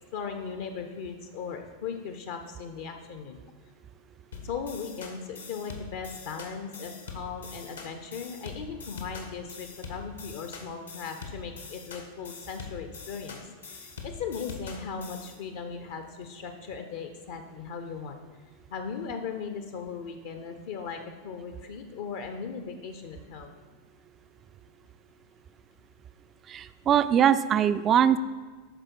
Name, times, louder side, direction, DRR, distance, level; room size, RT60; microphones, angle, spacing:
voice 1, 0.1-3.4 4.4-18.2 18.7-23.5, left 6 dB, 55° left, 6 dB, 0.7 m, -38 dB
sound 1, 4.3-15.4, left 4 dB, 70° left, 1.2 m, -43 dB
voice 2, 26.5-28.2, right 9 dB, 30° right, 13 dB, 0.3 m, -22 dB
13.0 x 4.9 x 4.6 m, 1.4 s
figure-of-eight pair, 90°, 0 cm